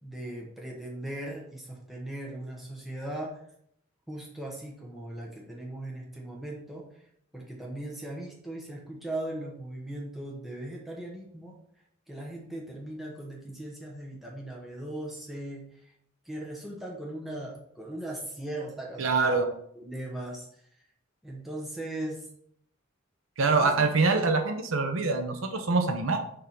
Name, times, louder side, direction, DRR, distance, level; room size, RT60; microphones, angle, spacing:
voice 1, 0.0-3.4 4.1-6.8 7.3-11.6 12.1-15.6 16.3-19.4 19.8-20.5 21.2-22.2 23.4-23.7, right 1 dB, ahead, -3 dB, 1.2 m, -38 dB
voice 2, 19.0-19.5 23.4-26.2, right 3 dB, 70° right, 5 dB, 0.8 m, -25 dB
6.7 x 3.6 x 5.9 m, 0.70 s
head